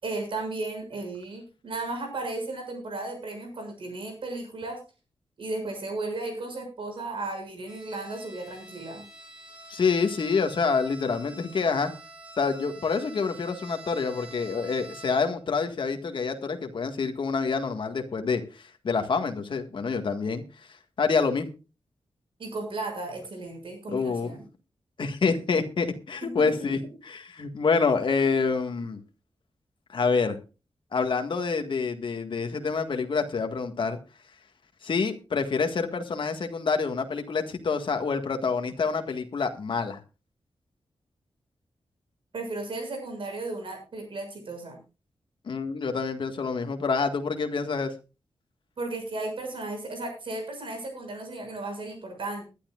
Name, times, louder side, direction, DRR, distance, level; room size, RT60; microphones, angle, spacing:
voice 1, 0.0-4.8 5.4-9.0 22.4-24.4 26.2-26.5 42.3-44.8 48.8-52.4, right 2 dB, 60° right, 4 dB, 6.7 m, -35 dB
Bowed string instrument, 7.7-15.5, right 2 dB, 10° right, 3.2 m, -47 dB
voice 2, 9.7-11.9 12.4-20.4 21.0-21.5 23.9-24.4 25.0-26.8 27.1-29.0 29.9-30.4 30.9-34.0 34.8-40.0 45.5-47.9, left 5 dB, 55° left, 6 dB, 1.7 m, -27 dB
21.5 x 11.5 x 2.4 m, 0.31 s
wide cardioid pair, 170°, 10 cm